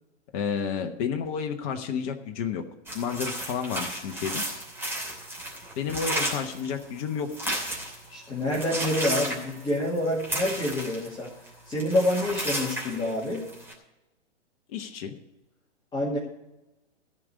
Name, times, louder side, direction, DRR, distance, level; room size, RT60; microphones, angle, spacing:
voice 1, 0.3-2.6 2.9-4.4 5.8-7.6 14.7-15.1, left 7 dB, 30° left, 5 dB, 1.1 m, -31 dB
sound 1, 2.9-8.1 8.4-11.5 11.7-13.7, right 1 dB, 5° right, 2.8 m, -33 dB
voice 2, 8.1-11.3 11.7-13.4 15.9-16.2, left 1 dB, 10° left, -5 dB, 2.3 m, -27 dB
14.5 x 5.3 x 9.6 m, 0.94 s
figure-of-eight pair, 120°, 35 cm